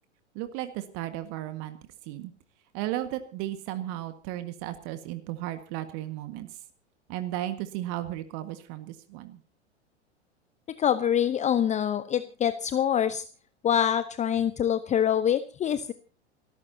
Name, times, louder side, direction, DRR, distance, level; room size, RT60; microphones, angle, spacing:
voice 1, 0.3-1.8 2.0-2.3 2.7-6.6 7.1-9.4, right 14 dB, 45° right, 9 dB, 1.8 m, -35 dB
voice 2, 10.8-13.2 13.6-15.9, left 9 dB, 20° left, 13 dB, 0.9 m, -25 dB
29.0 x 14.5 x 2.9 m, 0.34 s
figure-of-eight pair, 95°, 35 cm